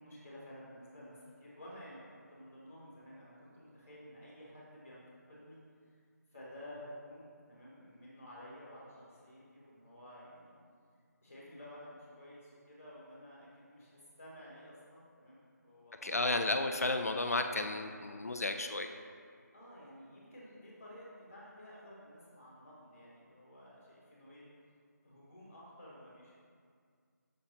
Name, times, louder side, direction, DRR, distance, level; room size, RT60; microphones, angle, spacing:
voice 1, 0.0-5.6 6.3-10.5 11.2-16.6 19.5-24.4 25.0-26.3, equal, 5° left, -15 dB, 0.4 m, -53 dB
voice 2, 16.0-18.9, left 2 dB, 55° left, 6 dB, 0.6 m, -33 dB
11.5 x 6.4 x 3.0 m, 2.1 s
figure-of-eight pair, 180°, 10 cm